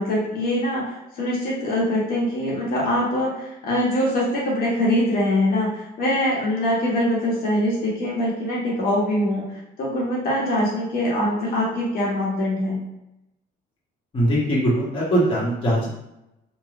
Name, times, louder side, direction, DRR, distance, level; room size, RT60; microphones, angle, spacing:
voice 1, 0.0-9.4 9.8-12.8, left 1 dB, 65° left, -5 dB, 1.1 m, -23 dB
voice 2, 14.1-15.9, right 1 dB, 30° left, -7 dB, 1.0 m, -21 dB
3.1 x 2.2 x 2.4 m, 0.86 s
cardioid pair, 110°, 17 cm